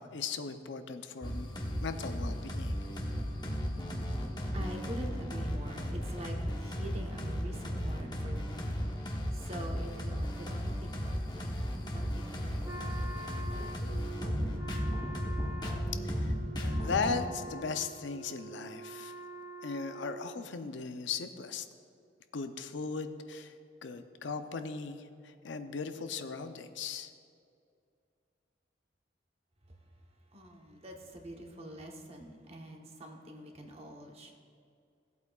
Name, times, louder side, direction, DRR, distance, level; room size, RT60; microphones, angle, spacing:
voice 1, 0.0-1.5 1.8-2.8 16.0-16.3 16.6-19.1 19.6-21.7 22.3-23.5 23.8-27.1, left 5 dB, 75° left, 8 dB, 0.5 m, -37 dB
sound 1, 1.2-17.1, equal, 25° left, 0.9 m, -35 dB
voice 2, 2.6-14.8 29.7-34.4, right 1 dB, 30° right, 2 dB, 0.9 m, -47 dB
Wind instrument woodwind instrument, 12.6-20.6, right 2 dB, 10° right, 0.4 m, -46 dB
16.5 x 8.2 x 2.4 m, 2.3 s
head